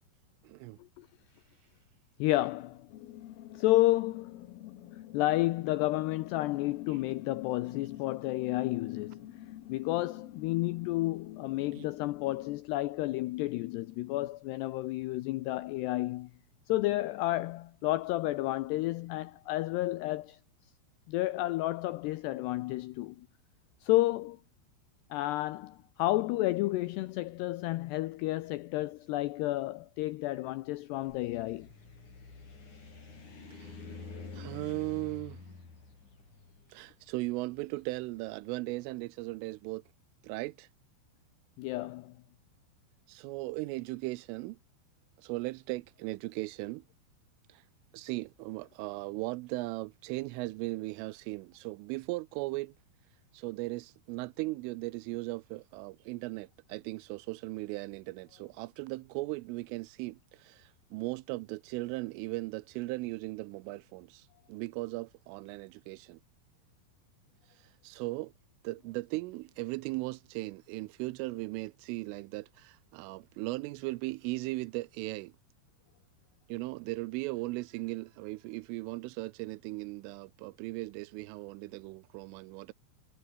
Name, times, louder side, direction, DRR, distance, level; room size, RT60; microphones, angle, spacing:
voice 1, 0.4-0.8 11.7-11.9 33.5-33.7 34.3-35.4 36.7-39.8 40.2-40.7 43.1-44.6 45.2-46.8 47.5-47.6 47.9-52.7 53.3-66.2 67.6-68.3 68.6-75.3 76.5-82.7, right 22 dB, 90° right, 3.3 m, -38 dB
voice 2, 2.2-2.9 3.5-4.5 5.1-9.3 9.7-16.3 16.7-20.4 21.1-23.3 23.8-24.4 25.1-31.7 41.6-42.2, left 17 dB, 90° left, 2.4 m, -31 dB
sound 1, 2.9-12.6, left 14 dB, 65° left, 2.7 m, -48 dB
sound 2, 31.0-38.1, left 4 dB, 40° left, 7.5 m, -48 dB
omnidirectional pair, 5.6 m